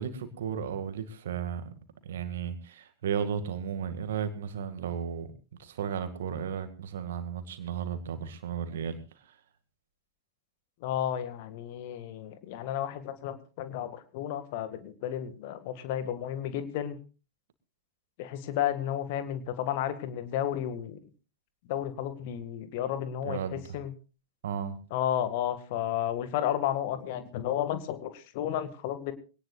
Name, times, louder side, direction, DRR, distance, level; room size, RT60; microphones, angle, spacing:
voice 1, 0.0-1.7 2.0-5.3 5.6-9.0 9.2-9.4 23.2-23.8 24.4-24.8, right 7 dB, 60° right, 10 dB, 2.0 m, -34 dB
voice 2, 10.8-17.0 18.2-21.0 21.7-23.9 24.9-29.1, left 11 dB, 50° left, 11 dB, 1.9 m, -32 dB
23.0 x 18.0 x 2.5 m, 0.33 s
figure-of-eight pair, 90°, 0 cm